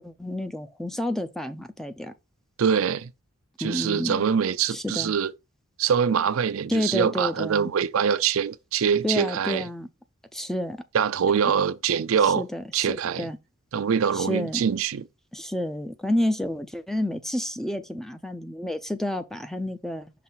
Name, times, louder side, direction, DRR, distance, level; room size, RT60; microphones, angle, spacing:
voice 1, 0.0-2.1 3.6-4.2 4.7-5.1 6.7-7.7 9.0-9.9 10.3-10.8 12.2-13.4 14.1-14.6 15.3-20.1, left 1 dB, ahead, 0.5 m, -30 dB
voice 2, 2.6-3.1 3.6-5.3 5.8-9.6 10.9-12.4 12.7-13.3 13.7-15.0, right 7 dB, 75° right, 0.4 m, -24 dB
6.0 x 3.2 x 5.6 m
head